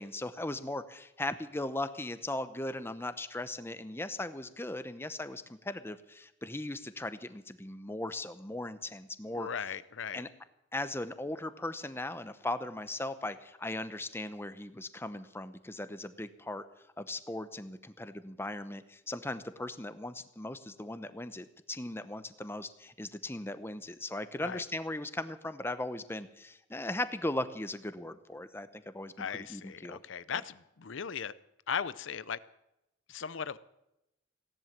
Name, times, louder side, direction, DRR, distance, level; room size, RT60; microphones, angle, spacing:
voice 1, 0.0-9.5 10.1-10.3 10.7-16.7 17.0-30.0, left 1 dB, 10° left, 12 dB, 0.8 m, -38 dB
voice 2, 9.3-10.2 24.4-24.6 29.2-31.3 31.7-32.4 33.1-33.6, left 7 dB, 75° left, 17 dB, 0.6 m, -37 dB
17.0 x 11.0 x 7.4 m, 0.87 s
head